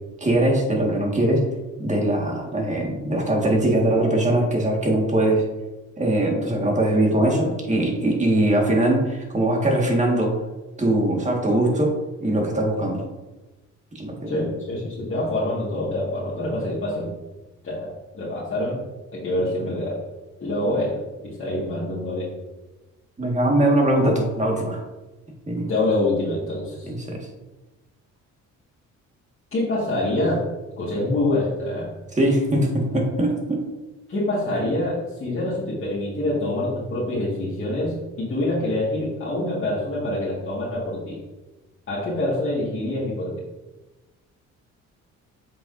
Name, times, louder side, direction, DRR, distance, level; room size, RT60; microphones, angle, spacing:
voice 1, 0.2-1.4 1.8-5.4 6.0-10.3 10.8-13.0 13.9-14.4 23.2-24.8 25.5-25.7 26.8-27.3 32.1-33.6, right 1 dB, 25° right, 0 dB, 1.8 m, -21 dB
voice 2, 14.3-17.1 17.6-18.8 19.1-19.9 20.4-22.3 25.7-26.9 29.5-30.5 30.8-31.9 34.1-41.2 41.9-43.3, left 1 dB, 45° left, -8 dB, 2.1 m, -26 dB
7.7 x 5.5 x 2.7 m, 1.1 s
cardioid pair, 90°, 30 cm